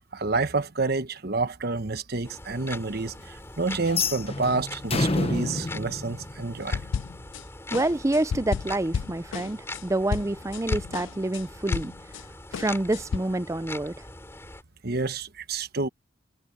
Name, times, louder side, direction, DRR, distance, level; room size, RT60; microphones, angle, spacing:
voice 1, 0.1-6.8 14.8-15.9, right 3 dB, 55° right, 1.2 m, -29 dB
sound 1, 2.2-14.6, left 2 dB, 15° left, 4.1 m, -42 dB
sound 2, 3.9-7.0, left 3 dB, 30° left, 1.1 m, -29 dB
sound 3, 6.7-7.4 7.7-12.2 12.5-13.2, left 6 dB, 80° left, 0.4 m, -31 dB
voice 2, 7.7-11.9 12.5-14.0, right 2 dB, 15° right, 0.5 m, -27 dB
head